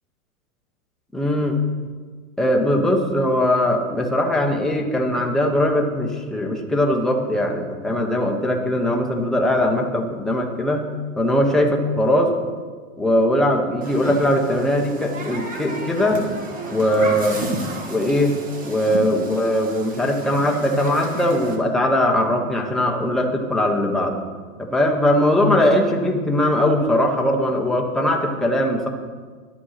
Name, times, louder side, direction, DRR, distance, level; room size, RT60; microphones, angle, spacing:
voice 1, 1.1-1.6 2.4-10.9 11.2-12.3 13.0-16.2 16.7-17.4 17.9-18.3 18.6-24.2 24.6-28.9, left 1 dB, ahead, 0 dB, 1.1 m, -20 dB
Human group actions, 13.8-21.6, right 2 dB, 20° right, 1.5 m, -32 dB
11.5 x 8.6 x 5.8 m, 1.6 s
hypercardioid pair, 130°, 43 cm